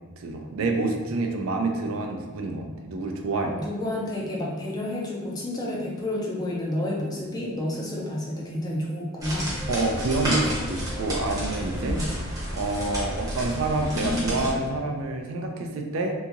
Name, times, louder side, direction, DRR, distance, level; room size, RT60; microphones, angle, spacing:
voice 1, 0.2-3.6 9.7-12.0 12.5-16.1, right 2 dB, 75° right, 3 dB, 0.4 m, -28 dB
voice 2, 3.3-9.6 11.8-12.1, left 1 dB, 20° left, -3 dB, 0.4 m, -30 dB
sound 1, 9.2-14.5, equal, 15° right, 0.7 m, -30 dB
sound 2, 9.5-13.2, left 1 dB, 55° left, 1.3 m, -44 dB
2.8 x 2.7 x 2.4 m, 1.4 s
head